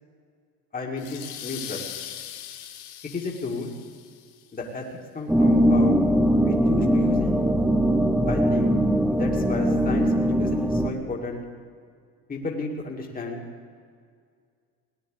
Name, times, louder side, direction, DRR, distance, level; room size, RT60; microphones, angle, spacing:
voice 1, 0.7-1.9 3.1-3.7 4.5-4.9 5.1-6.0 6.4-7.3 8.2-8.7 9.1-11.4 12.3-13.4, left 3 dB, 20° left, -1 dB, 2.2 m, -33 dB
sound 1, 1.0-4.4, left 11 dB, 70° left, 1.6 m, -40 dB
sound 2, 5.3-10.9, equal, 5° right, 0.9 m, -21 dB
18.0 x 9.6 x 7.9 m, 2.1 s
supercardioid pair, 110°, 41 cm